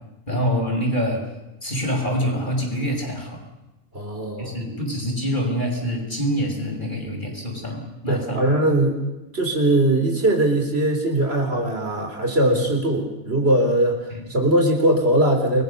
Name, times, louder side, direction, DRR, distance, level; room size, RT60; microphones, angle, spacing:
voice 1, 0.3-1.2 1.6-3.4 4.4-8.5 12.5-12.6 14.1-14.2, equal, 35° left, 1 dB, 6.2 m, -26 dB
voice 2, 3.9-4.6 8.1-9.0 9.3-14.0 14.3-15.6, right 1 dB, 45° right, 2 dB, 4.3 m, -20 dB
29.5 x 21.5 x 6.8 m, 0.99 s
omnidirectional pair, 1.4 m